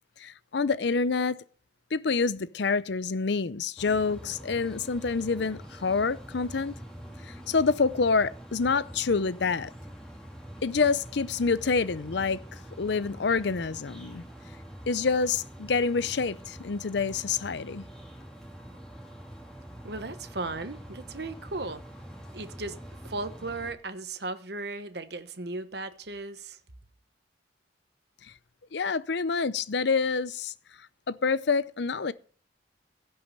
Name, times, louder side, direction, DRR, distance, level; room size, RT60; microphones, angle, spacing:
voice 1, 0.2-1.4 1.9-6.8 7.2-9.7 10.6-14.2 14.9-17.9 28.2-28.3 28.7-30.5 31.1-32.1, left 4 dB, 65° left, 0.6 m, -27 dB
sound 1, 3.8-23.7, equal, 5° left, 2.7 m, -45 dB
voice 2, 19.8-21.8 22.3-22.8 23.0-26.6, right 3 dB, 55° right, 1.1 m, -36 dB
16.5 x 5.6 x 6.6 m
head